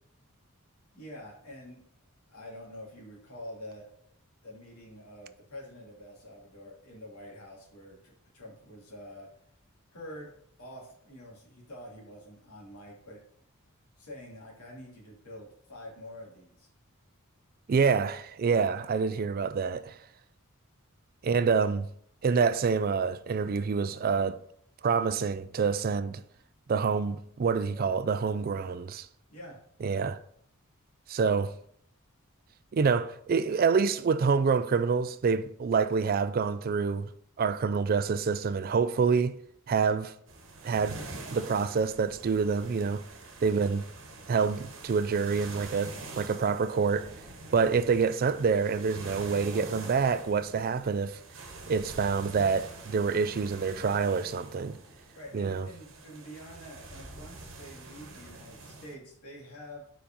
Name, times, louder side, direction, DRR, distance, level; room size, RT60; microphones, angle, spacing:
voice 1, 0.9-1.8 2.3-3.9 4.4-9.3 9.9-10.3 10.6-13.2 14.0-16.7 29.3-29.6 55.1-59.8, equal, 90° left, 2.5 m, -46 dB
voice 2, 17.7-20.0 21.2-21.9 22.2-24.4 24.8-26.2 26.7-29.1 29.8-30.2 31.1-31.5 32.7-37.1 37.4-39.4 39.7-40.1 40.6-41.0 41.3-43.0 43.4-43.8 44.3-47.1 47.5-51.2 51.7-54.8 55.3-55.7, right 5 dB, 40° right, 0.3 m, -27 dB
sound 1, 40.3-58.9, right 2 dB, 60° right, 1.1 m, -45 dB
5.1 x 4.8 x 5.2 m
head